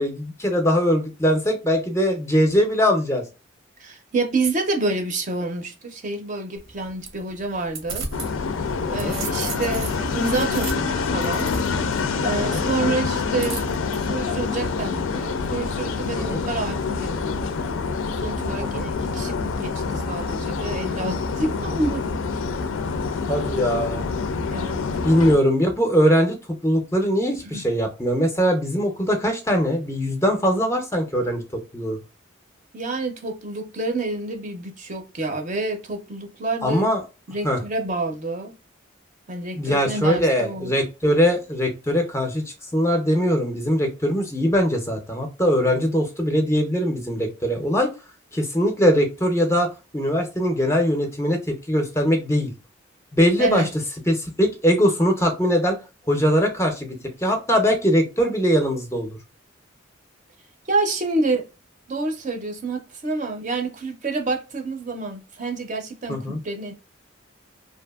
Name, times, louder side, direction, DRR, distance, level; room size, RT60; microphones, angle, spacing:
voice 1, 0.0-3.2 8.9-9.2 12.4-12.6 16.3-16.4 18.7-18.9 23.3-24.1 25.0-26.4 26.6-31.4 31.7-32.0 36.6-37.0 37.4-37.6 39.5-47.9 48.3-49.7 49.9-52.5 53.1-53.7 54.1-55.8 56.1-59.1 66.1-66.4, equal, 15° left, 0.5 m, -21 dB
voice 2, 3.8-8.1 8.9-11.5 12.2-13.6 13.9-17.6 18.2-22.0 24.5-24.8 27.4-27.6 32.7-36.9 37.3-38.5 39.3-40.7 53.4-53.7 60.7-61.5 61.9-66.7, right 2 dB, 40° right, 0.5 m, -28 dB
sound 1, 6.6-8.3 8.7-12.0 13.4-14.0, right 4 dB, 75° right, 0.7 m, -35 dB
sound 2, 8.1-25.4, left 4 dB, 75° left, 0.4 m, -26 dB
2.7 x 2.5 x 2.3 m
head